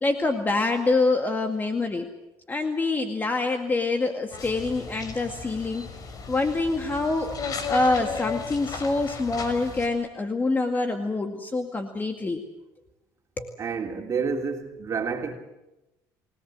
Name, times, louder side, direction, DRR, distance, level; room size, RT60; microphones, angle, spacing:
voice 1, 0.0-2.1 2.5-5.9 6.3-7.4 7.7-12.4 13.4-13.5, left 3 dB, 20° left, 6 dB, 2.1 m, -26 dB
sound 1, 4.3-9.9, left 4 dB, 50° left, 5.1 m, -35 dB
voice 2, 13.6-15.3, right 5 dB, 40° right, 3 dB, 3.4 m, -29 dB
28.5 x 18.0 x 7.7 m, 0.96 s
supercardioid pair, 90°, 8 cm